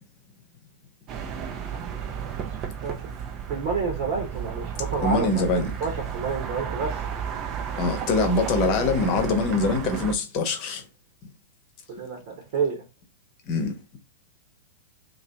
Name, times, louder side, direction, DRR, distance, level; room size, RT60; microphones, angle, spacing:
sound 1, 1.1-10.1, right 7 dB, 35° right, 0.6 m, -33 dB
voice 1, 1.8-2.3 2.8-3.0 3.5-7.0 8.6-8.8 11.9-12.8, right 5 dB, 55° right, 1.1 m, -30 dB
voice 2, 5.0-5.7 7.8-10.8 13.5-13.8, left 3 dB, 40° left, 1.0 m, -24 dB
2.9 x 2.7 x 3.5 m
figure-of-eight pair, 100°, 0 cm